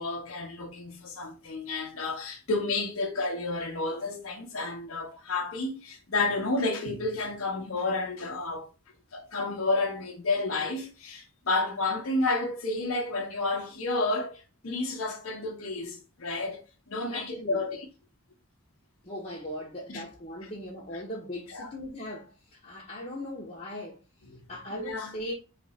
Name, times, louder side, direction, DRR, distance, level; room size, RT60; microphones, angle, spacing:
voice 1, 0.0-8.7 9.1-16.6 16.9-17.9 19.9-20.0 20.4-20.5 20.9-21.0 21.5-21.7 24.3-24.4 24.7-25.1, left 2 dB, 65° left, 0.9 m, -31 dB
voice 2, 17.1-17.6 19.0-24.0 24.5-25.3, left 1 dB, 30° left, 0.9 m, -39 dB
3.3 x 3.0 x 4.1 m
head